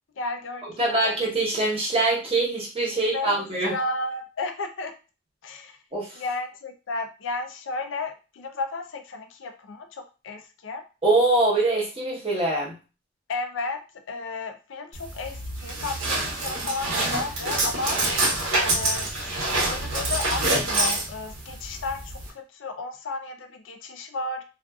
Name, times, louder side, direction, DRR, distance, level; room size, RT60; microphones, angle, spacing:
voice 1, 0.2-1.0 3.1-3.4 3.7-4.9 5.4-5.8 6.1-10.8 13.3-18.0 18.6-24.4, left 3 dB, 70° left, 6 dB, 0.4 m, -33 dB
voice 2, 0.8-3.8 5.9-6.2 11.0-12.8, right 2 dB, 30° right, -5 dB, 1.0 m, -23 dB
sound 1, 14.9-22.3, right 2 dB, 75° right, 0.9 m, -26 dB
2.5 x 2.4 x 2.3 m, 0.32 s
head